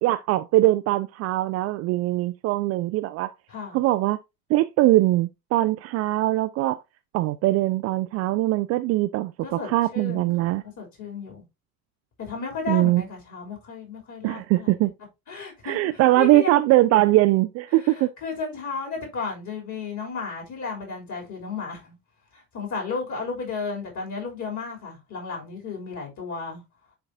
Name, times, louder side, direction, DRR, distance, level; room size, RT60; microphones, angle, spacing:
voice 1, 0.0-3.3 3.7-4.2 4.5-6.8 7.1-9.3 9.6-10.6 12.7-13.0 14.2-14.9 15.6-18.1, right 17 dB, 35° right, 0.4 m, -21 dB
voice 2, 3.5-3.8 9.4-11.4 12.2-14.7 15.3-16.7 17.8-22.0 22.3-26.6, left 5 dB, 40° left, 3.5 m, -34 dB
10.0 x 3.9 x 2.7 m
figure-of-eight pair, 65°, 44 cm